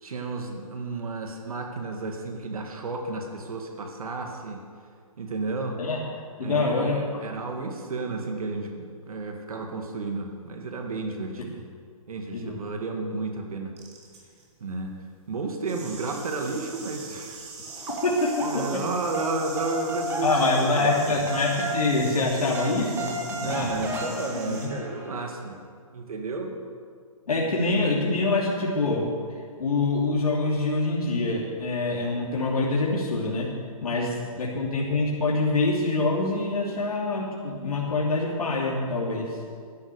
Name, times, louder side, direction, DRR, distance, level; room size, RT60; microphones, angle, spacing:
voice 1, 0.0-4.6 5.2-5.8 6.4-11.6 12.1-13.7 14.6-14.9 15.3-17.5 17.8-18.0 18.4-21.2 23.4-25.6 25.9-26.5 34.3-34.4, right 3 dB, 75° right, 3 dB, 2.0 m, -32 dB
voice 2, 6.4-7.2 12.3-12.6 18.0-18.6 20.2-23.9 24.5-24.9 27.3-29.1 29.6-33.5 33.8-39.4, left 3 dB, 85° left, -3 dB, 2.8 m, -25 dB
sound 1, 13.8-14.5 15.6-24.7, right 4 dB, 45° right, 3.2 m, -42 dB
sound 2, 17.6-18.9 19.1-25.3, right 1 dB, 10° right, 1.3 m, -33 dB
12.0 x 11.0 x 7.0 m, 2.1 s
hypercardioid pair, 160°, 19 cm